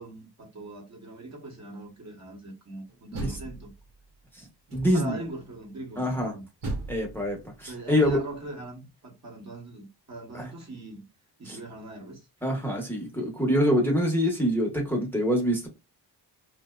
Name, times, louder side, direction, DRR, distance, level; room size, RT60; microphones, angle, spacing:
voice 1, 0.0-3.7 4.9-6.4 7.7-11.0 11.4-12.3, right 2 dB, 40° right, 1.1 m, -41 dB
Door, 2.9-4.1 4.7-5.3 6.6-8.5, right 2 dB, 85° right, 0.9 m, -38 dB
voice 2, 4.7-5.2 6.0-6.3 6.9-8.2 10.3-10.4 11.5-11.6 12.4-15.7, equal, 5° left, 0.8 m, -25 dB
2.6 x 2.1 x 2.2 m
cardioid pair, 80°, 40 cm